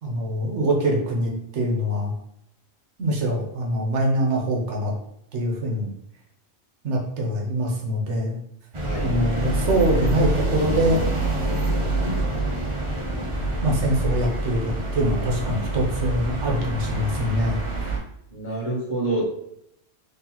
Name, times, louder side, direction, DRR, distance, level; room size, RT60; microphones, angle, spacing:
voice 1, 0.0-2.1 3.0-4.9 5.3-5.9 6.8-8.4 9.0-11.0 12.0-12.3 13.6-17.6 17.8-18.0, right 1 dB, 80° right, 0 dB, 1.2 m, -24 dB
sound 1, 8.7-18.0, right 1 dB, 30° right, 0.8 m, -26 dB
voice 2, 8.8-9.2 18.3-19.2, right 2 dB, 45° left, -6 dB, 1.4 m, -27 dB
3.8 x 3.3 x 2.9 m, 0.75 s
omnidirectional pair, 1.2 m